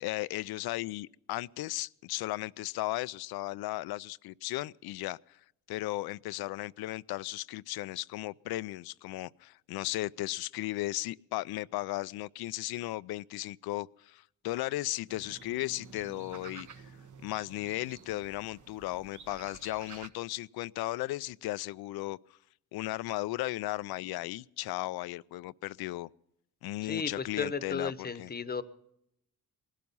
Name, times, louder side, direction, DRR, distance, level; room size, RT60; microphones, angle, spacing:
voice 1, 0.0-5.2 5.7-16.7 17.2-22.2 22.7-26.1 26.6-28.3, left 17 dB, 75° left, 0.5 m, -36 dB
sound 1, 15.1-20.1, right 6 dB, 50° right, 1.2 m, -51 dB
voice 2, 26.8-28.6, left 5 dB, 25° left, 1.0 m, -34 dB
19.5 x 12.5 x 5.5 m
cardioid pair, 90°, 38 cm